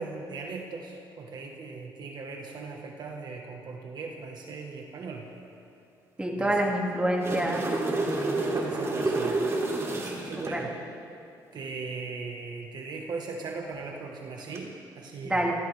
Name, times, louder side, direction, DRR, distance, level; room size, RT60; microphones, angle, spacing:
voice 1, 0.0-5.2 6.4-6.5 8.3-9.4 9.9-10.7 11.5-15.5, right 4 dB, 60° right, 1 dB, 1.6 m, -39 dB
voice 2, 6.2-7.7 10.4-10.6 15.2-15.6, right 1 dB, 15° right, -1 dB, 2.7 m, -27 dB
sound 1, 6.9-10.6 14.4-14.6, right 2 dB, 35° right, 3.1 m, -29 dB
29.0 x 14.0 x 3.6 m, 2.5 s
cardioid pair, 100°, 8 cm